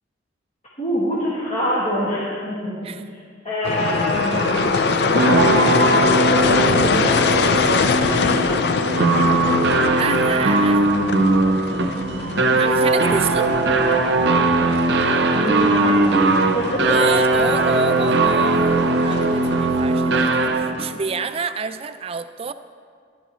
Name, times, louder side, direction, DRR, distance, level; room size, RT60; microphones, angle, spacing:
voice 1, 0.8-2.9 3.4-4.8 5.8-6.0 6.4-7.3 7.8-8.6 15.3-16.0 16.5-17.0, equal, 35° left, -9 dB, 1.9 m, -25 dB
sound 1, 3.6-19.6, left 4 dB, 60° left, 0.5 m, -24 dB
sound 2, 4.1-20.9, right 2 dB, 60° right, 0.7 m, -19 dB
voice 2, 10.0-10.9 12.5-13.5 16.9-22.5, right 5 dB, 30° right, 11 dB, 0.3 m, -28 dB
15.5 x 11.0 x 3.1 m, 2.1 s
head